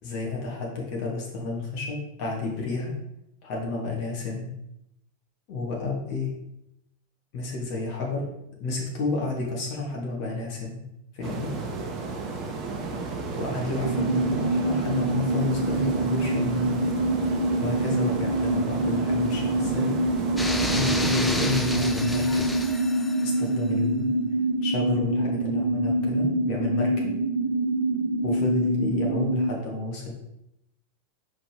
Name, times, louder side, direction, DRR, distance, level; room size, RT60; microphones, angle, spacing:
voice 1, 0.0-2.9 3.4-4.5 5.5-6.4 7.3-8.3 8.6-10.8 11.1-11.5 13.4-16.7 17.6-20.2 20.6-22.5 23.2-24.1 24.6-27.2 28.2-30.1, left 3 dB, 45° left, -1 dB, 1.7 m, -31 dB
sound 1, 11.2-21.6, right 3 dB, 30° right, 1.0 m, -33 dB
sound 2, 13.8-29.5, right 1 dB, 80° right, 0.9 m, -25 dB
sound 3, 20.4-23.5, left 2 dB, 5° left, 0.5 m, -31 dB
5.0 x 3.9 x 4.9 m, 0.84 s
figure-of-eight pair, 90°, 0 cm